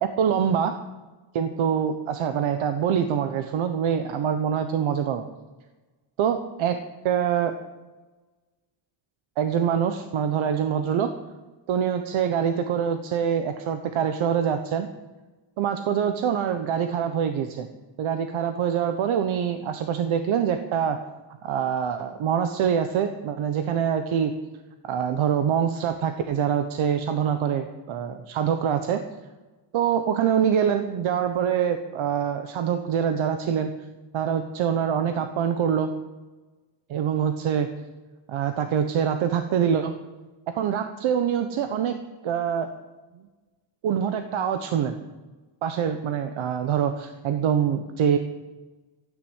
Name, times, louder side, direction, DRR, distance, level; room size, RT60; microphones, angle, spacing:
voice 1, 0.0-0.7 1.3-5.2 6.2-6.8 7.0-7.5 9.4-11.1 11.7-14.9 15.6-17.7 18.0-21.0 21.4-24.3 24.8-29.0 29.7-33.7 34.1-35.9 36.9-37.7 38.3-39.9 40.5-42.0 42.2-42.7 43.8-45.0 45.6-48.2, right 8 dB, 80° right, 7 dB, 1.1 m, -25 dB
13.5 x 9.6 x 8.1 m, 1.2 s
wide cardioid pair, 175°, 47 cm